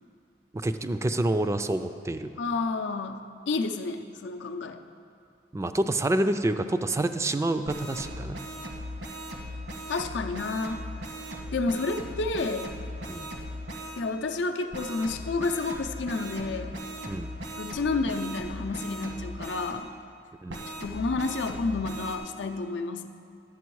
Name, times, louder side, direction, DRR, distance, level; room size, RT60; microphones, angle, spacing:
voice 1, 0.5-2.3 5.5-8.4 13.1-13.3 17.0-17.3 20.4-20.6, right 1 dB, 15° right, 9 dB, 0.3 m, -27 dB
voice 2, 2.4-4.8 9.9-10.8 11.5-12.7 14.0-16.8 17.6-19.9 20.8-23.1, left 3 dB, 80° left, 6 dB, 0.5 m, -30 dB
sound 1, 7.6-14.0 14.7-19.8 20.5-22.2, equal, 85° right, 1.3 m, -38 dB
11.0 x 7.7 x 4.7 m, 2.5 s
head